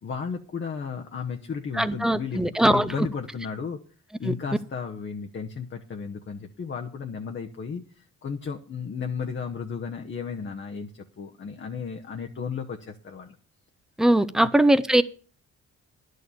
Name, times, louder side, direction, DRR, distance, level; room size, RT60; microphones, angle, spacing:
voice 1, 0.0-3.8 4.2-13.3 14.4-14.5, left 6 dB, 40° left, 1.0 m, -34 dB
voice 2, 1.7-3.1 4.2-4.3 14.0-15.0, right 1 dB, ahead, 0.6 m, -21 dB
10.5 x 6.6 x 7.0 m
cardioid pair, 90°, 30 cm